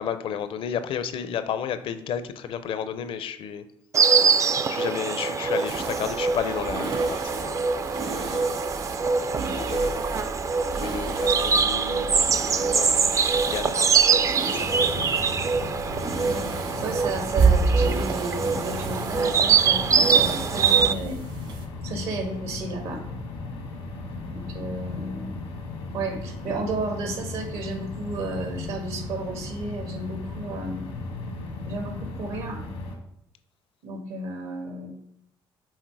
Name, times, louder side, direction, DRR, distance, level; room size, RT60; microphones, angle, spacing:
voice 1, 0.0-3.6 4.0-7.7 8.1-8.6 9.2-9.9 10.8-15.2, left 8 dB, 65° left, 11 dB, 0.6 m, -33 dB
Insect, 3.9-20.9, right 5 dB, 30° right, 0.4 m, -23 dB
sound 1, 5.6-21.6, right 4 dB, 60° right, 1.4 m, -31 dB
sound 2, 14.5-33.0, left 3 dB, 90° left, 1.4 m, -36 dB
voice 2, 16.8-21.2 21.8-23.0 24.3-25.4 25.9-30.8 31.6-32.6 33.8-34.9, right 2 dB, 80° right, 3 dB, 1.6 m, -32 dB
6.4 x 3.8 x 4.7 m, 0.74 s
supercardioid pair, 80°, 10 cm